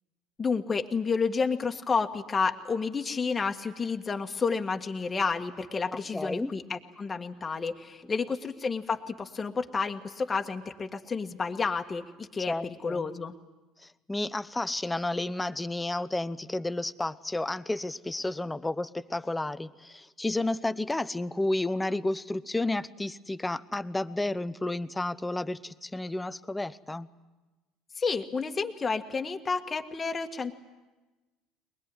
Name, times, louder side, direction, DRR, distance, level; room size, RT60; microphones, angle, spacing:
voice 1, 0.4-13.3 28.0-30.5, left 5 dB, 30° left, 4 dB, 1.6 m, -30 dB
voice 2, 5.9-6.5 12.5-13.1 14.1-27.1, left 2 dB, 10° left, 15 dB, 0.9 m, -31 dB
22.0 x 20.5 x 9.7 m, 1.2 s
hypercardioid pair, 75°, 0 cm